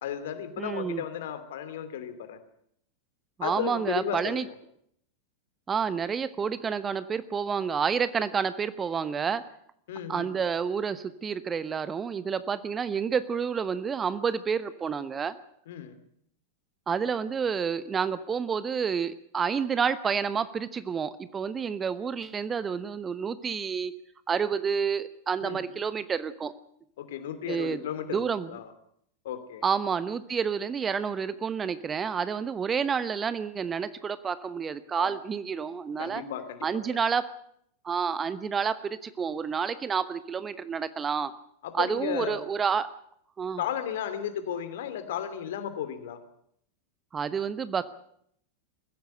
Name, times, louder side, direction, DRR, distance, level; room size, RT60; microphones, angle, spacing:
voice 1, 0.0-2.4 3.4-4.5 9.9-10.3 15.7-16.0 25.4-25.6 27.0-28.7 29.2-29.6 35.0-35.1 36.0-37.0 41.6-42.4 43.6-46.2, left 9 dB, 55° left, 11 dB, 2.8 m, -34 dB
voice 2, 0.6-1.0 3.4-4.4 5.7-9.4 10.1-15.3 16.9-23.9 24.3-26.5 27.5-28.5 29.6-36.2 36.6-37.2 37.8-41.3 41.7-42.9 43.4-43.6 47.1-47.9, right 6 dB, 20° right, 14 dB, 1.0 m, -29 dB
21.0 x 15.5 x 9.0 m, 0.71 s
figure-of-eight pair, 90°, 0 cm